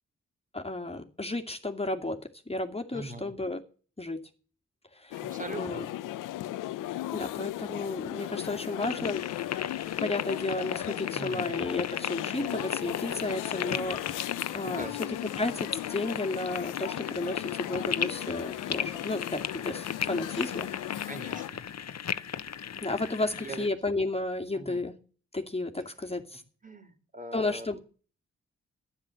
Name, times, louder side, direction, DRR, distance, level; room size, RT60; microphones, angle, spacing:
voice 1, 0.5-3.6 4.0-4.3 4.9-5.2 5.6-5.9 7.1-9.2 10.0-21.1 22.8-25.0 25.3-26.4 27.3-27.8, left 2 dB, 20° left, 3 dB, 2.4 m, -33 dB
voice 2, 2.9-3.3 5.2-5.8 11.1-11.5 14.7-14.9 21.1-21.6 23.4-23.7 24.5-24.8 26.6-27.8, right 2 dB, 25° right, 8 dB, 3.4 m, -41 dB
sound 1, 5.1-21.5, left 14 dB, 90° left, 0.8 m, -37 dB
sound 2, 8.8-23.7, left 8 dB, 60° left, 1.1 m, -36 dB
12.5 x 10.0 x 7.8 m, 0.40 s
supercardioid pair, 40°, 31 cm